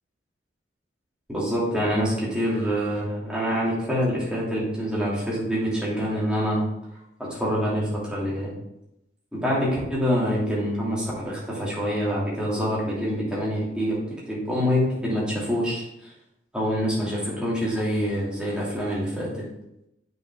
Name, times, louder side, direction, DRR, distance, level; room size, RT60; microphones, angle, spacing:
voice 1, 1.3-6.6 7.3-8.5 9.3-14.0 14.3-16.1 16.5-19.4, equal, 5° right, -7 dB, 2.9 m, -26 dB
7.6 x 6.1 x 3.8 m, 0.84 s
head